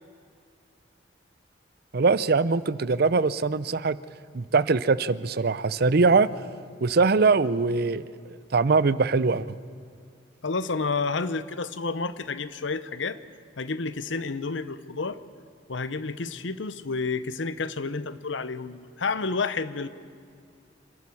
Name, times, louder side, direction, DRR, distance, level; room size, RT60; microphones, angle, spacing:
voice 1, 1.9-4.0 4.3-6.3 6.8-9.6, right 4 dB, 55° right, 17 dB, 0.6 m, -22 dB
voice 2, 10.4-13.2 13.6-15.2 15.7-19.9, left 4 dB, 75° left, 14 dB, 0.8 m, -30 dB
27.0 x 12.0 x 8.6 m, 2.4 s
head